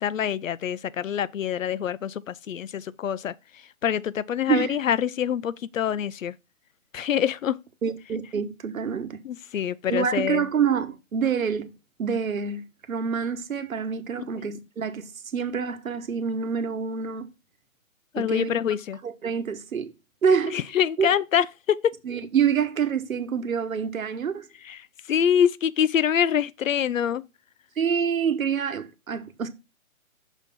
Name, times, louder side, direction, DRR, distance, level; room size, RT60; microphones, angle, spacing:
voice 1, 0.0-3.3 3.8-6.3 6.9-7.6 9.2-10.5 14.4-14.5 18.1-19.0 20.5-21.9 24.6-27.2, left 9 dB, 70° left, 0.5 m, -25 dB
voice 2, 7.8-9.2 9.9-11.7 12.0-12.6 12.9-17.3 18.1-18.5 19.0-19.9 20.2-20.6 21.0-21.1 22.0-24.4 27.8-29.5, right 7 dB, 75° right, 1.2 m, -26 dB
6.3 x 4.0 x 5.3 m
hypercardioid pair, 165°, 42 cm